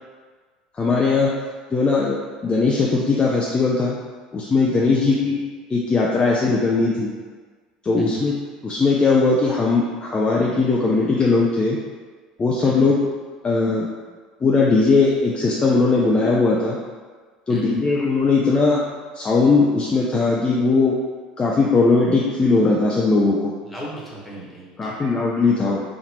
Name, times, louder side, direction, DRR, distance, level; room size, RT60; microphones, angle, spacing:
voice 1, 0.8-1.4 1.7-4.0 4.3-5.4 5.7-7.1 7.8-8.3 8.6-11.8 12.4-13.0 13.4-13.9 14.4-16.8 17.5-18.8 19.1-21.0 21.4-23.5 24.8-25.8, left 3 dB, 25° left, -3 dB, 0.5 m, -19 dB
voice 2, 4.9-5.3 8.0-8.2 12.6-12.9 17.5-17.8 23.6-25.0, right 2 dB, 5° left, -6 dB, 1.3 m, -36 dB
4.2 x 2.6 x 3.0 m, 1.5 s
hypercardioid pair, 70°, 4 cm